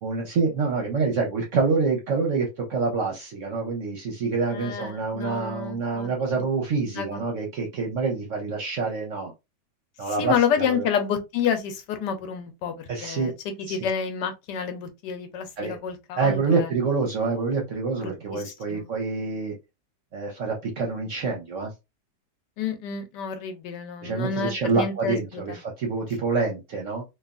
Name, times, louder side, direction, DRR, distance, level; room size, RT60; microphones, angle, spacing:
voice 1, 0.0-9.3 10.0-10.9 12.9-13.3 13.7-13.8 15.6-15.8 16.2-19.6 20.1-21.7 24.0-27.0, right 4 dB, 60° right, 0.8 m, -26 dB
voice 2, 4.5-6.1 6.3-6.4 6.9-7.2 10.1-16.7 18.0-18.9 22.6-25.6, left 7 dB, 80° left, 1.2 m, -29 dB
3.2 x 2.3 x 2.4 m
omnidirectional pair, 1.9 m